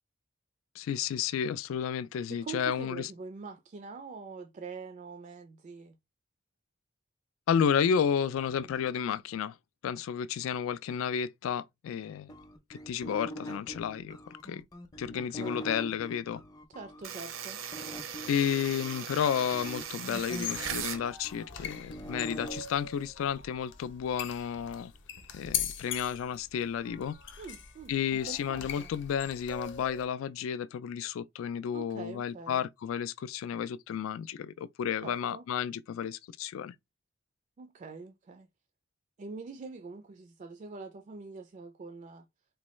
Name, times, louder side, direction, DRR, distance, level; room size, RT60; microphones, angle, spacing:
voice 1, 0.8-3.1 7.5-9.6 9.8-12.3 12.7-14.2 14.4-14.6 15.0-16.4 18.3-24.9 25.3-27.4 27.9-36.7, left 8 dB, 75° left, 0.3 m, -32 dB
voice 2, 2.3-6.0 15.1-15.6 16.7-17.6 27.4-28.9 31.7-32.7 35.0-35.4 37.6-38.5 39.2-42.3, right 4 dB, 35° right, 0.3 m, -44 dB
sound 1, 12.3-17.0 17.7-22.6, right 1 dB, 20° left, 0.5 m, -43 dB
sound 2, 17.0-21.0, right 8 dB, 80° right, 0.7 m, -39 dB
sound 3, 20.3-30.0, left 8 dB, 60° left, 0.7 m, -41 dB
4.0 x 2.2 x 3.0 m
head